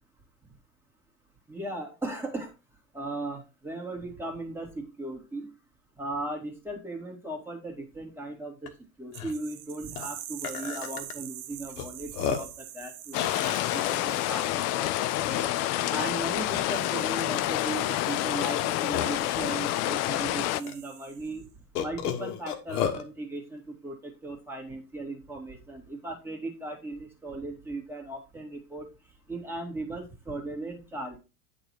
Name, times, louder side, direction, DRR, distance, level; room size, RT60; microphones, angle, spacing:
voice 1, 1.5-2.5 2.9-5.5 6.0-8.7 9.0-15.4 15.9-21.5 21.8-28.8 29.3-31.2, right 2 dB, 5° right, 1 dB, 2.3 m, -37 dB
Burping eructation, 8.7-8.8 9.1-9.3 10.0-10.1 10.4-11.1 11.8-11.9 12.1-12.6 13.2-14.2 14.8-14.9 15.2-15.8 16.5-16.9 18.4-19.3 20.1-20.2 20.7-20.8 21.7-23.0, left 8 dB, 85° left, 1.5 m, -32 dB
sound 1, 9.1-21.4, right 12 dB, 65° right, 1.0 m, -46 dB
sound 2, 13.1-20.6, left 16 dB, 40° left, 0.4 m, -28 dB
8.8 x 4.1 x 4.5 m, 0.29 s
supercardioid pair, 120°, 45 cm